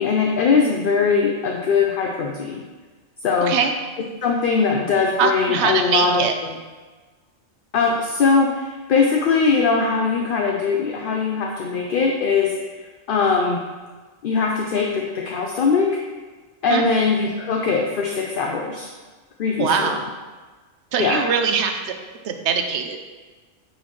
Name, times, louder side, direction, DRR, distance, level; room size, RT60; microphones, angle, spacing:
voice 1, 0.0-2.6 3.2-3.5 4.2-6.3 7.7-12.8 13.1-13.6 14.2-16.0 16.6-18.9 19.4-19.9 21.0-21.2, left 5 dB, 55° left, 1 dB, 0.6 m, -21 dB
voice 2, 3.4-3.7 5.2-6.3 16.7-16.8 19.6-20.1 20.9-21.7 22.2-23.1, right 6 dB, 70° right, 5 dB, 0.8 m, -22 dB
9.0 x 4.3 x 3.1 m, 1.3 s
omnidirectional pair, 1.3 m